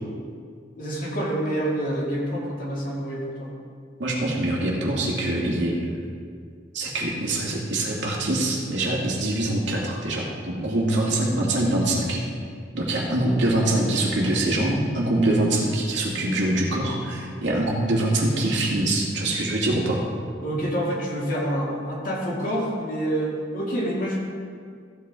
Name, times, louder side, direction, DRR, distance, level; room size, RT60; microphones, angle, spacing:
voice 1, 0.7-3.5 20.4-24.2, right 1 dB, 45° left, -4 dB, 2.5 m, -27 dB
voice 2, 4.0-5.8 6.7-12.2 12.7-20.0, right 1 dB, 70° right, -3 dB, 2.3 m, -24 dB
15.0 x 8.4 x 3.7 m, 2.1 s
head